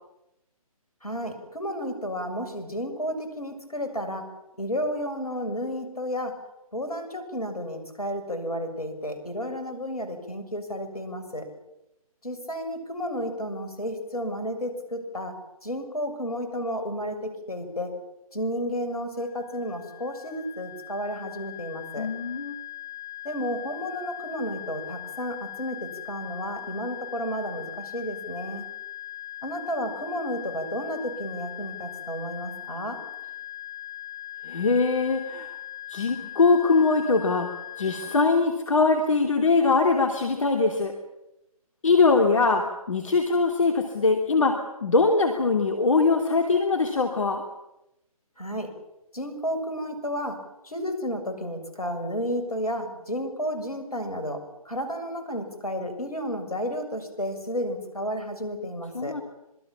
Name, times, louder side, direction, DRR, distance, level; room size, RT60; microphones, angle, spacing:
voice 1, 1.0-4.3 4.6-6.4 6.7-11.5 12.2-17.9 18.3-22.1 23.2-28.7 29.4-33.0 48.4-48.7 49.1-59.2, equal, 75° left, 7 dB, 6.9 m, -32 dB
sound 1, 19.2-38.3, left 13 dB, 25° left, 7.6 m, -40 dB
voice 2, 22.0-22.5 34.4-35.5 35.9-41.0 41.8-47.4 58.9-59.2, left 4 dB, 60° left, 4 dB, 2.9 m, -22 dB
26.5 x 22.0 x 7.4 m, 0.89 s
figure-of-eight pair, 140°, 19 cm